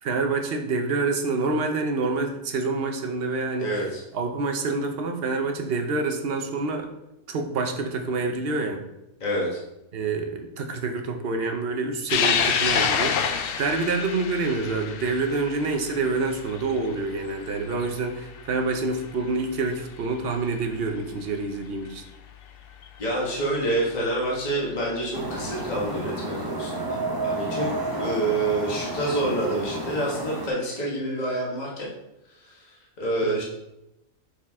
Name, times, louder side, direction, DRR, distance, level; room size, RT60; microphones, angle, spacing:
voice 1, 0.0-3.7 4.1-6.9 7.3-8.9 9.9-22.0 33.2-33.4, right 3 dB, 50° right, 4 dB, 0.8 m, -27 dB
voice 2, 3.6-4.0 9.2-9.6 23.0-27.7 28.0-31.9 32.3-33.4, right 1 dB, 30° left, -4 dB, 1.5 m, -27 dB
sound 1, 12.1-18.8 19.2-19.3 20.6-20.7 22.8-22.9 24.3-24.6, left 7 dB, 85° left, 0.5 m, -27 dB
sound 2, 25.1-30.5, right 2 dB, 30° right, 0.4 m, -31 dB
6.5 x 4.5 x 3.5 m, 0.91 s
omnidirectional pair, 1.6 m